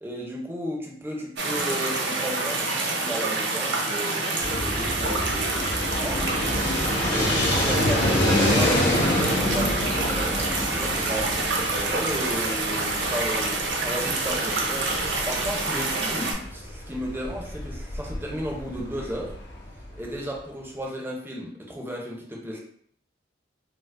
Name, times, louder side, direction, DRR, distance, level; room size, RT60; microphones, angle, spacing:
voice 1, 0.0-6.3 7.1-9.1 9.5-15.0 15.3-19.3 19.9-22.6, equal, 10° right, -2 dB, 0.5 m, -34 dB
sound 1, 1.4-16.3, right 3 dB, 65° right, 0.6 m, -27 dB
Fixed-wing aircraft airplane, 4.4-20.1, left 1 dB, 75° left, 0.8 m, -27 dB
4.4 x 2.0 x 2.4 m, 0.65 s
head